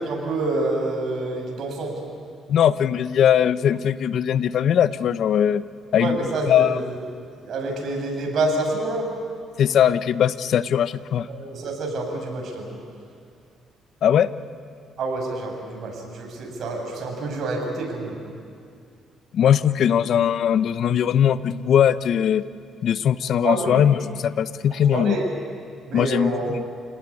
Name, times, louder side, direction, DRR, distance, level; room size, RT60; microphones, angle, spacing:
voice 1, 0.0-2.0 6.0-7.0 7.4-9.1 11.3-12.8 15.0-18.2 23.4-23.8 24.9-25.3 25.9-26.5, right 2 dB, 60° right, 1 dB, 7.3 m, -27 dB
voice 2, 2.5-5.6 5.9-6.2 6.5-6.8 9.6-11.3 14.0-14.3 19.3-22.4 22.8-25.2 25.9-26.6, left 9 dB, 65° left, 14 dB, 0.9 m, -20 dB
28.0 x 19.0 x 9.9 m, 2.4 s
cardioid pair, 90°, 0 cm